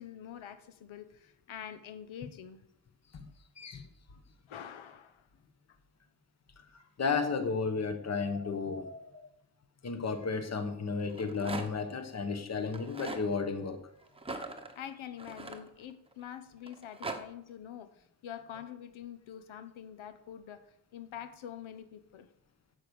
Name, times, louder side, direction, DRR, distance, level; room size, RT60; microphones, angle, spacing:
voice 1, 0.0-2.7 4.5-5.3 5.7-5.8 14.7-20.7 20.9-22.3, left 9 dB, 90° left, 10 dB, 1.1 m, -46 dB
voice 2, 3.6-3.9 7.0-9.2 9.8-13.8, left 4 dB, 35° left, 8 dB, 1.2 m, -33 dB
Rattle, 11.0-11.9 12.6-13.2 14.2-16.1 16.7-17.2, right 3 dB, 10° right, 1.0 m, -41 dB
11.0 x 8.0 x 7.0 m, 0.76 s
wide cardioid pair, 180°, 46 cm